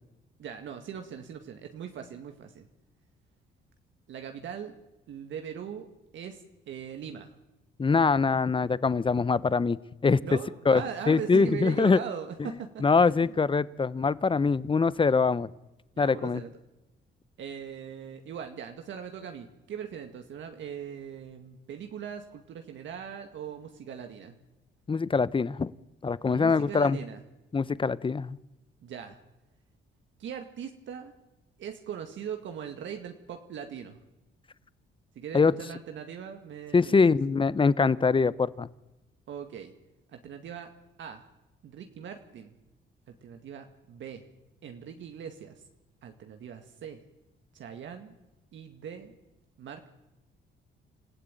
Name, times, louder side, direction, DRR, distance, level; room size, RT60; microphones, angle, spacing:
voice 1, 0.4-2.7 4.1-4.7 5.1-5.9 6.1-7.3 10.2-13.4 16.0-16.5 17.4-24.4 26.3-27.2 28.8-29.2 30.2-31.1 31.6-34.0 35.2-37.0 39.3-39.7 40.1-40.7 41.0-41.2 41.6-42.6 43.1-44.2 44.6-45.6 46.0-47.0 47.5-48.1 48.5-49.1 49.6-49.9, right 8 dB, 70° right, 5 dB, 2.0 m, -40 dB
voice 2, 7.8-10.2 10.7-12.0 12.8-15.5 16.0-16.4 24.9-25.7 26.0-27.0 27.5-28.4 35.3-35.5 36.7-38.7, left 4 dB, 25° left, 19 dB, 0.9 m, -23 dB
27.5 x 14.5 x 9.2 m, 1.0 s
cardioid pair, 90°, 20 cm